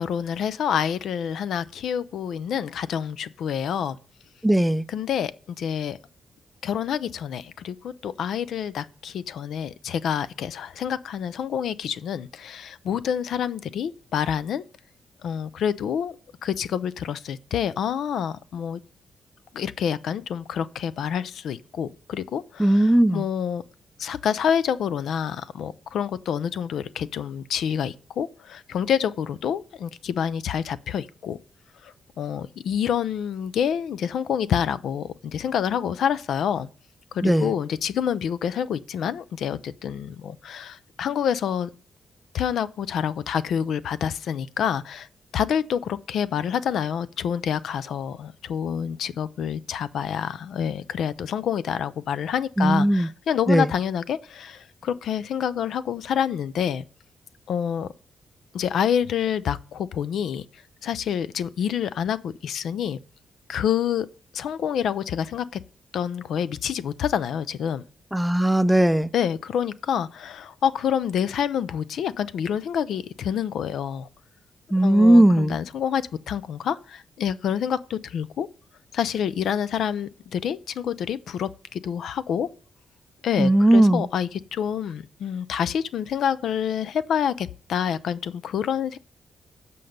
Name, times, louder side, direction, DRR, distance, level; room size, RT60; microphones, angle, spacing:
voice 1, 0.0-4.0 4.9-6.0 6.6-14.6 15.2-16.1 16.4-18.8 19.5-23.6 24.0-31.4 31.8-36.7 37.1-41.7 42.3-45.1 45.3-56.8 57.5-57.9 58.5-60.4 60.8-63.0 63.5-64.1 64.3-65.6 65.9-67.8 69.1-74.1 74.8-78.5 78.9-82.5 83.2-89.0, left 8 dB, 85° left, 0.4 m, -27 dB
voice 2, 4.4-4.8 22.6-23.2 37.2-37.5 52.6-53.1 53.5-53.7 68.1-69.1 74.7-75.6 83.4-84.1, right 1 dB, 5° right, 0.4 m, -18 dB
7.7 x 5.3 x 6.4 m
cardioid pair, 80°, 0 cm